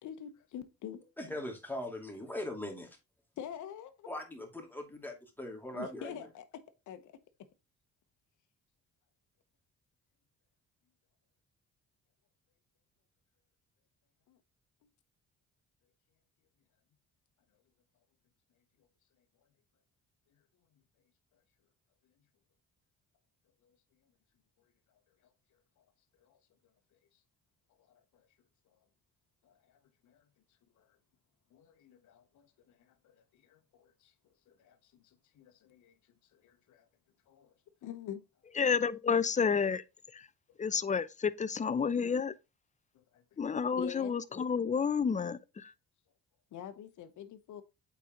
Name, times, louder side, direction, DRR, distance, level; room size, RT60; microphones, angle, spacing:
voice 1, 0.0-1.0 3.4-4.1 5.7-6.4 6.9-7.1 14.3-14.4 23.6-23.7 26.2-26.4 28.1-28.3 29.4-29.6 30.0-30.2 30.8-30.9 31.5-34.1 34.5-35.9 36.3-36.9 37.3-37.5 37.8-38.2 42.9-43.2 43.5-44.1 46.5-47.6, left 9 dB, 75° left, 1.1 m, -46 dB
voice 2, 1.2-3.0 4.1-6.1, left 1 dB, 5° left, 2.5 m, -40 dB
voice 3, 38.6-39.8 40.1-40.2 40.6-42.3 43.4-45.7, left 6 dB, 25° left, 0.6 m, -30 dB
8.2 x 4.3 x 3.7 m
cardioid pair, 90°, 30 cm